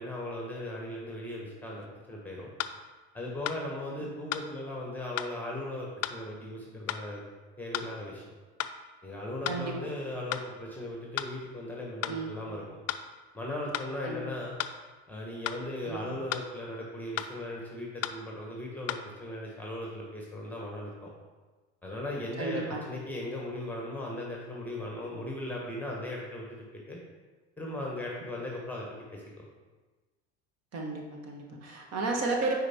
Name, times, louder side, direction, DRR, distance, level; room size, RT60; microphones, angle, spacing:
voice 1, 0.0-2.5 3.1-7.2 7.6-8.2 9.0-12.6 13.3-14.6 15.1-21.1 21.8-27.0 27.6-29.5, left 1 dB, 5° left, -2 dB, 1.1 m, -38 dB
sound 1, 1.8-1.9 2.6-2.8 3.5-3.6 4.3-4.5 5.2-5.3 6.0-6.2 6.9-7.0 7.7-7.9 8.6-8.8 9.4-9.6 10.3-10.5 11.2-11.3 12.0-12.2 12.9-13.1 13.7-13.9 14.6-14.8 15.5-15.6 16.3-16.5 17.2-17.3 18.0-18.2 18.9-19.0, left 12 dB, 50° left, 0.4 m, -34 dB
voice 2, 22.4-22.8 30.7-32.5, right 3 dB, 50° right, 1 dB, 1.4 m, -33 dB
5.1 x 4.4 x 4.2 m, 1.3 s
hypercardioid pair, 80°, 34 cm